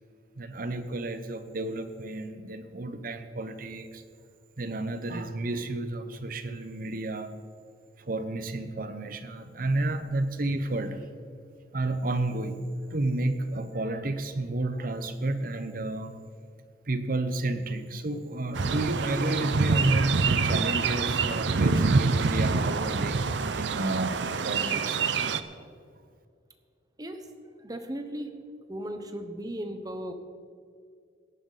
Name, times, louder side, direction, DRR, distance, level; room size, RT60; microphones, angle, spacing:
voice 1, 0.4-4.0 4.6-7.4 8.0-11.0 11.7-16.2 16.9-25.0, right 2 dB, 50° right, 10 dB, 0.8 m, -31 dB
sound 1, 18.5-25.4, right 4 dB, 75° right, 0.6 m, -26 dB
voice 2, 27.0-28.3 28.7-30.1, right 1 dB, 20° right, 6 dB, 1.0 m, -37 dB
17.5 x 10.5 x 4.1 m, 2.2 s
head